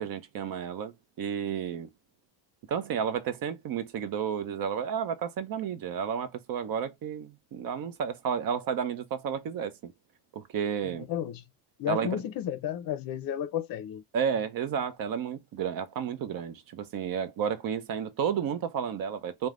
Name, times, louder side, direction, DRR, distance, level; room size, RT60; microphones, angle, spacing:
voice 1, 0.0-1.9 2.7-9.9 10.3-11.0 11.9-12.2 14.1-19.5, right 7 dB, 45° right, 0.7 m, -32 dB
voice 2, 11.1-11.4 11.8-14.0, left 10 dB, 50° left, 0.6 m, -32 dB
3.1 x 2.2 x 2.4 m
cardioid pair, 115°, 47 cm